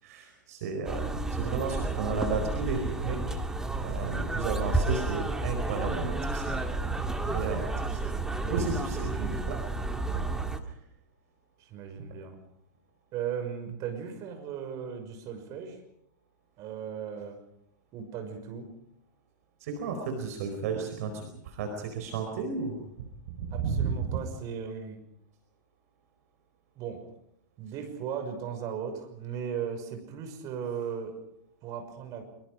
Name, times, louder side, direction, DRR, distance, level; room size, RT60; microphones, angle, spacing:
voice 1, 0.0-3.4 3.8-6.6 6.9-8.2 8.5-9.6 10.0-10.3 10.7-10.8 12.0-12.1 19.6-22.8 23.4-23.9, right 5 dB, 50° right, 5 dB, 4.6 m, -33 dB
sound 1, 0.9-10.6, right 2 dB, 5° right, 2.2 m, -31 dB
voice 2, 8.8-9.4 11.6-12.4 13.1-15.8 16.6-17.4 17.9-18.7 23.5-25.0 26.8-27.1 27.6-31.2 31.6-32.2, right 7 dB, 35° right, 6 dB, 6.0 m, -37 dB
25.5 x 24.5 x 5.2 m, 0.78 s
figure-of-eight pair, 100°, 10 cm